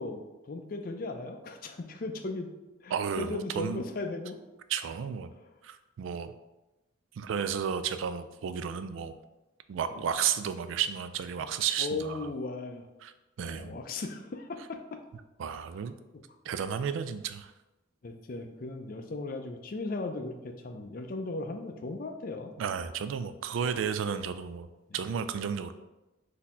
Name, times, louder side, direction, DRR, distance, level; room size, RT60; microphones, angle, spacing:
voice 1, 0.0-2.5 2.8-4.4 9.9-10.1 11.8-12.9 13.4-15.0 16.5-16.7 18.0-22.6 23.6-23.7 24.9-25.0, left 3 dB, 45° left, 5 dB, 0.4 m, -37 dB
voice 2, 2.9-3.8 4.7-5.3 5.6-6.3 7.2-9.1 9.7-12.3 13.0-13.1 13.4-13.8 15.4-15.9 16.4-17.5 22.6-24.7 24.9-25.7, right 7 dB, 80° right, 11 dB, 0.3 m, -32 dB
4.1 x 2.7 x 4.2 m, 1.0 s
head